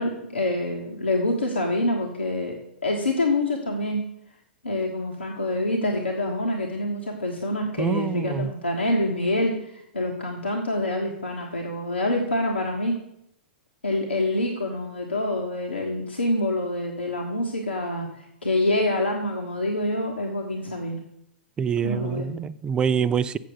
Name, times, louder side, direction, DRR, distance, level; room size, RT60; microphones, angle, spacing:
voice 1, 0.0-2.5 2.8-4.0 4.6-12.9 13.8-21.0 21.8-22.3, left 1 dB, 90° left, 0 dB, 1.3 m, -26 dB
voice 2, 7.8-8.5 21.6-23.4, right 7 dB, 15° right, 14 dB, 0.3 m, -25 dB
7.6 x 7.4 x 6.3 m, 0.79 s
figure-of-eight pair, 110°, 6 cm